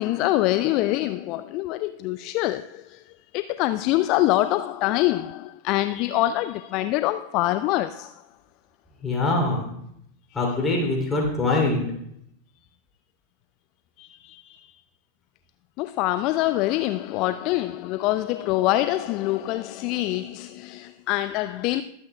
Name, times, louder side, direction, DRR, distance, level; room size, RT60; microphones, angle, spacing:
voice 1, 0.0-3.0 3.3-8.1 10.3-10.4 14.0-14.7 15.8-21.8, left 15 dB, 40° left, 0.3 m, -25 dB
voice 2, 9.0-9.7 10.3-11.9, left 2 dB, 15° left, 2.9 m, -23 dB
21.5 x 8.4 x 2.3 m
figure-of-eight pair, 90°, 0 cm